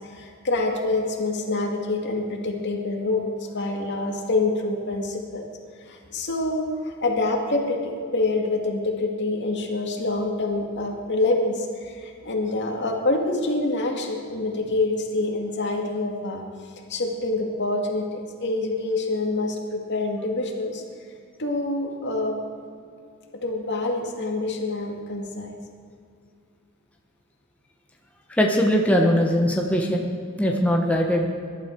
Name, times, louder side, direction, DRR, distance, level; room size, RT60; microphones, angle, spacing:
voice 1, 0.1-5.4 5.8-16.5 16.9-20.8 21.4-22.4 23.4-25.6, left 2 dB, 55° left, 1 dB, 2.2 m, -26 dB
voice 2, 28.4-30.0 30.4-31.3, equal, 5° left, 0 dB, 1.3 m, -20 dB
22.0 x 12.0 x 4.7 m, 2.3 s
head